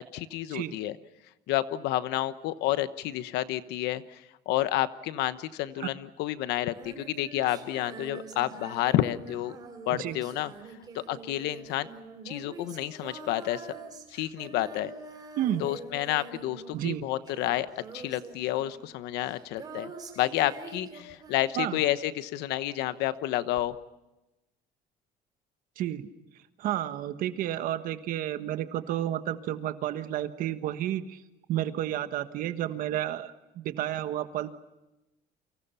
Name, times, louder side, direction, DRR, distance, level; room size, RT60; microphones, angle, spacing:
voice 1, 0.1-1.0 1.5-4.2 4.5-9.5 9.9-10.5 10.9-11.9 12.2-13.7 14.1-14.9 15.6-17.7 17.9-23.8, left 14 dB, 80° left, 13 dB, 1.1 m, -30 dB
Female singing, 6.7-22.0 23.6-23.7, right 4 dB, 25° right, 3.7 m, -45 dB
voice 2, 15.4-15.7 16.7-17.0 21.6-21.8 25.8-26.1 26.6-31.2 31.5-34.5, right 12 dB, 55° right, 10 dB, 1.4 m, -31 dB
29.5 x 25.0 x 5.7 m, 0.98 s
cardioid pair, 175°, 17 cm